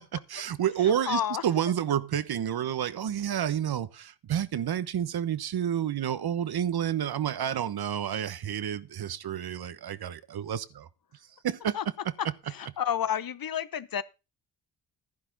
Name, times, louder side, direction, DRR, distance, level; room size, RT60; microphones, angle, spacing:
voice 1, 0.3-10.9 11.4-11.8, right 9 dB, 55° right, 1.1 m, -29 dB
voice 2, 0.8-1.4 11.7-11.9 12.2-14.0, left 9 dB, 50° left, 1.0 m, -31 dB
11.5 x 10.5 x 4.0 m
supercardioid pair, 50°, 44 cm